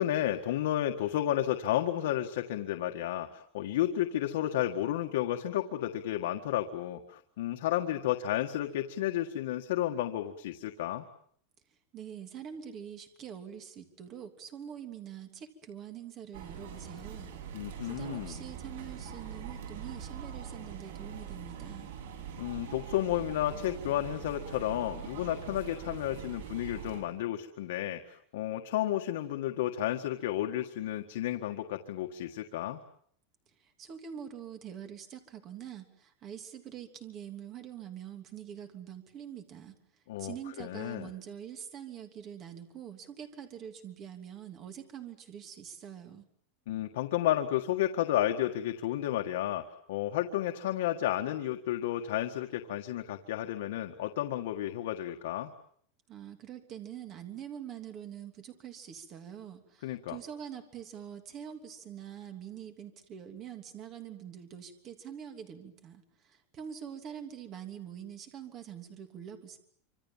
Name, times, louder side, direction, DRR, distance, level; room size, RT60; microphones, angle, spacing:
voice 1, 0.0-11.0 17.5-18.3 22.4-32.8 40.1-41.1 46.7-55.5 59.8-60.2, left 12 dB, 75° left, 5 dB, 1.7 m, -32 dB
voice 2, 11.9-17.3 17.8-21.9 33.6-39.8 40.2-46.2 56.1-69.6, right 9 dB, 30° right, 7 dB, 3.0 m, -45 dB
sound 1, 16.3-27.0, right 7 dB, 85° right, 8.0 m, -43 dB
26.5 x 26.0 x 7.3 m, 0.63 s
supercardioid pair, 170°, 0 cm